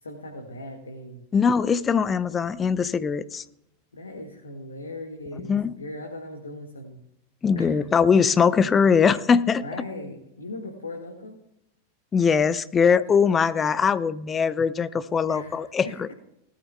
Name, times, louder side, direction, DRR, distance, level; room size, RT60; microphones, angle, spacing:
voice 1, 0.0-1.2 3.9-7.0 7.5-8.1 9.6-11.4 15.3-16.0, left 1 dB, 75° left, 2 dB, 1.7 m, -39 dB
voice 2, 1.3-3.4 5.5-5.7 7.4-9.6 12.1-16.1, left 6 dB, 20° left, 16 dB, 0.6 m, -21 dB
19.0 x 13.5 x 2.3 m, 0.81 s
figure-of-eight pair, 90°, 0 cm